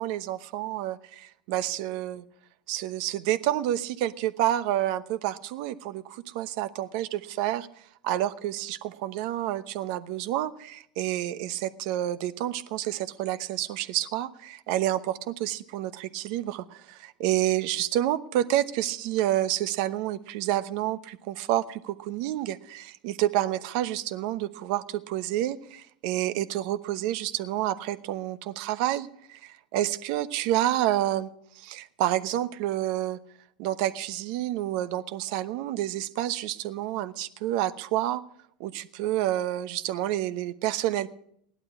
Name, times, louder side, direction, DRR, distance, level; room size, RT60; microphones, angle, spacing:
voice 1, 0.0-2.2 2.7-7.7 8.0-33.2 33.6-38.2 38.6-41.1, right 13 dB, 60° right, 12 dB, 1.0 m, -29 dB
17.0 x 11.5 x 4.8 m, 0.66 s
hypercardioid pair, 95°, 5 cm